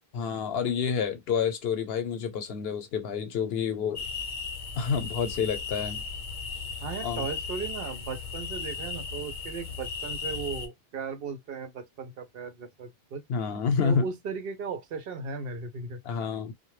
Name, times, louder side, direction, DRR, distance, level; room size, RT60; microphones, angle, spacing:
voice 1, 0.1-4.0 4.8-6.0 7.0-7.3 13.3-14.1 16.0-16.5, left 6 dB, 75° left, 0.9 m, -28 dB
sound 1, 4.0-10.7, left 5 dB, 55° left, 0.7 m, -36 dB
voice 2, 6.8-13.2 13.8-16.0, right 5 dB, 70° right, 0.8 m, -36 dB
2.2 x 2.0 x 3.1 m
omnidirectional pair, 1.0 m